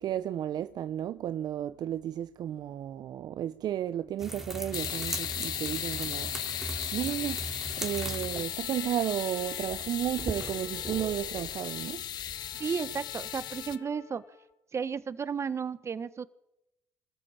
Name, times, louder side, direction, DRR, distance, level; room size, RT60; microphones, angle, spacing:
voice 1, 0.0-6.6 6.9-7.5 7.8-12.0, right 11 dB, 55° right, 0.8 m, -33 dB
sound 1, 4.2-12.7, right 1 dB, 5° right, 3.3 m, -40 dB
sound 2, 4.7-13.8, left 11 dB, 55° left, 1.2 m, -36 dB
Trumpet, 7.7-14.5, left 6 dB, 85° left, 3.9 m, -53 dB
voice 2, 12.6-14.2 14.7-16.3, right 6 dB, 35° right, 1.3 m, -33 dB
25.5 x 14.0 x 8.9 m
supercardioid pair, 75°, 8 cm